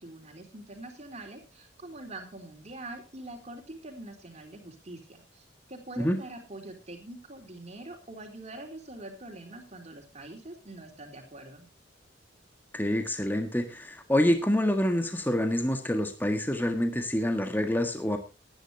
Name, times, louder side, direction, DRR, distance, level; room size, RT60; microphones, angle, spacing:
voice 1, 0.0-11.7, right 2 dB, 35° right, 5 dB, 3.8 m, -44 dB
voice 2, 12.7-18.2, left 1 dB, 10° left, 6 dB, 1.6 m, -27 dB
19.0 x 10.5 x 2.8 m, 0.29 s
head